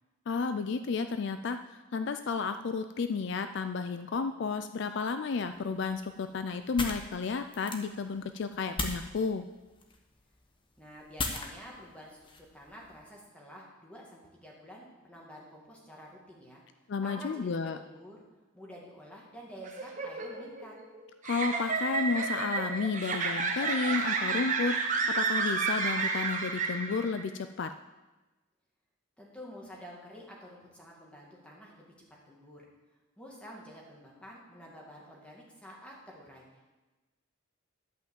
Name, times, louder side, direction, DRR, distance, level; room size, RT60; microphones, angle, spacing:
voice 1, 0.3-9.5 16.9-17.8 21.2-27.7, left 4 dB, 55° left, 9 dB, 0.4 m, -32 dB
sound 1, 5.5-13.0, left 3 dB, 25° left, 0.9 m, -40 dB
voice 2, 10.8-16.6 17.0-18.2 18.5-20.7 29.2-31.9 32.2-32.7 33.2-36.7, equal, 5° left, -3 dB, 2.1 m, -49 dB
sound 2, 19.6-27.2, right 4 dB, 35° right, 1.0 m, -31 dB
11.5 x 5.7 x 7.3 m, 1.1 s
head